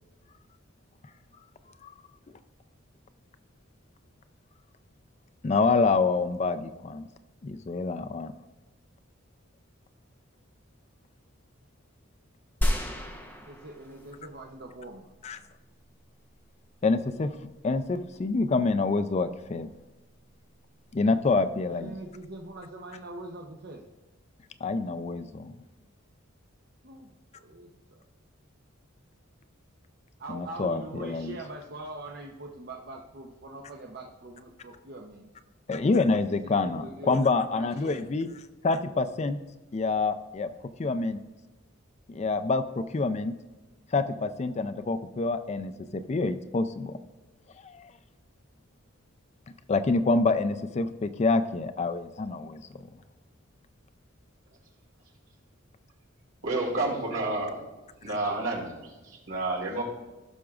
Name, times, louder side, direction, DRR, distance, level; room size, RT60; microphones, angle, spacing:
voice 1, 5.4-7.1 7.4-8.3 15.2-15.4 16.8-17.3 17.6-19.7 20.9-21.9 24.6-25.5 30.3-31.4 35.7-38.3 38.6-39.4 39.7-40.5 40.8-41.2 42.1-43.3 43.9-47.0 47.6-47.9 49.7-52.6, left 3 dB, 30° left, 10 dB, 0.3 m, -27 dB
sound 1, 12.6-14.4 14.9-15.0, equal, 10° left, 0.8 m, -30 dB
voice 2, 13.5-15.1 21.7-23.9 26.8-28.0 30.2-35.3 36.1-38.1, right 2 dB, 50° right, 0 dB, 0.7 m, -43 dB
voice 3, 56.4-57.6 58.0-58.7 59.3-59.8, right 2 dB, 70° right, -3 dB, 2.4 m, -29 dB
16.5 x 6.0 x 2.4 m, 1.2 s
head